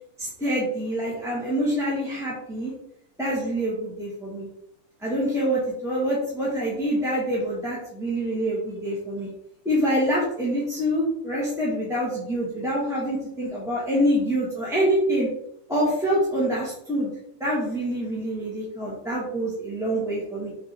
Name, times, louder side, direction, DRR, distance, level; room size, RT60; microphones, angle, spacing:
voice 1, 0.2-2.7 3.2-4.5 5.0-9.3 9.6-15.3 15.7-17.1 17.4-20.5, equal, ahead, -7 dB, 1.3 m, -26 dB
6.3 x 4.0 x 4.4 m, 0.75 s
omnidirectional pair, 2.4 m